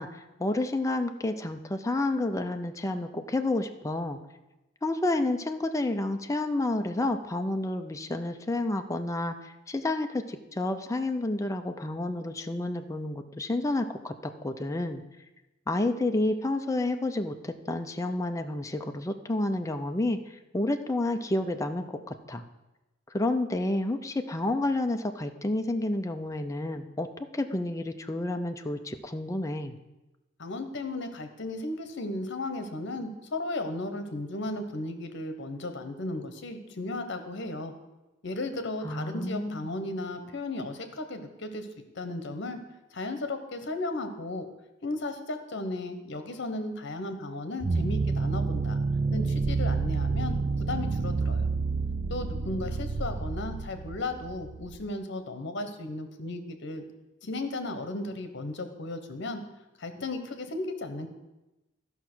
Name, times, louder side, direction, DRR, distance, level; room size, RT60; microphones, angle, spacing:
voice 1, 0.0-4.2 4.8-15.0 15.7-22.4 23.1-27.1 27.3-29.8 38.8-39.7, left 2 dB, 15° left, 6 dB, 0.5 m, -30 dB
voice 2, 30.4-37.7 38.2-41.7 41.9-42.6 42.9-44.4 44.8-48.8 49.1-50.4 50.7-51.5 52.1-56.8 57.2-59.4 59.8-61.1, left 2 dB, 60° left, 8 dB, 1.1 m, -35 dB
Cherno Alpha Horn, 47.6-54.8, right 4 dB, 35° right, 0.4 m, -29 dB
12.0 x 5.7 x 6.1 m, 1.0 s
head